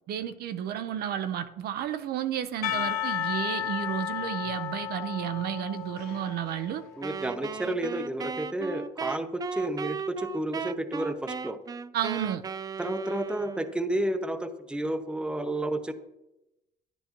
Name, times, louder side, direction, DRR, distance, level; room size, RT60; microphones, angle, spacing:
voice 1, 0.1-6.8 11.9-12.4, right 10 dB, 65° right, 10 dB, 0.7 m, -32 dB
Percussion / Church bell, 2.6-7.6, left 10 dB, 70° left, 1.1 m, -34 dB
voice 2, 7.0-11.6 12.8-15.9, right 1 dB, 5° right, 8 dB, 0.8 m, -31 dB
Wind instrument woodwind instrument, 7.0-13.9, right 6 dB, 20° right, 0.3 m, -37 dB
10.5 x 10.0 x 3.0 m, 0.94 s
cardioid pair, 110°, 17 cm